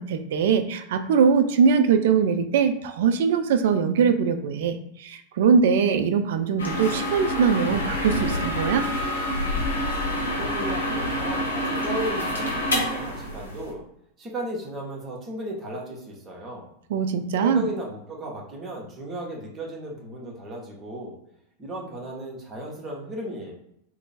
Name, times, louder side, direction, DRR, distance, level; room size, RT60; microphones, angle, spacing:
voice 1, 0.0-8.9 16.9-17.7, right 6 dB, 55° right, 8 dB, 0.4 m, -22 dB
sound 1, 6.6-13.7, left 1 dB, 75° left, 0.8 m, -27 dB
voice 2, 10.2-13.8 14.2-16.7 17.4-21.2 21.6-23.5, right 1 dB, 25° right, -2 dB, 1.0 m, -35 dB
2.9 x 2.2 x 4.1 m, 0.77 s
figure-of-eight pair, 90°, 0 cm